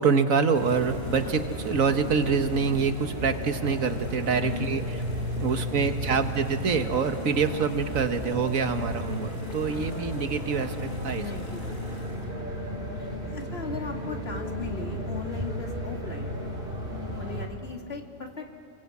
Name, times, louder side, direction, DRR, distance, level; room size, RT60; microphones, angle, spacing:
voice 1, 0.0-4.8 5.4-11.2, right 5 dB, 85° right, 8 dB, 1.8 m, -26 dB
Boiling, 0.5-12.3, equal, 90° left, 4.2 m, -46 dB
sound 1, 0.6-17.5, equal, 40° right, 5.1 m, -34 dB
voice 2, 4.4-4.8 5.5-6.4 7.5-7.7 9.6-10.4 11.1-16.3 16.9-18.5, left 4 dB, 50° left, 2 dB, 2.4 m, -40 dB
30.0 x 23.5 x 8.5 m, 2.6 s
omnidirectional pair, 1.4 m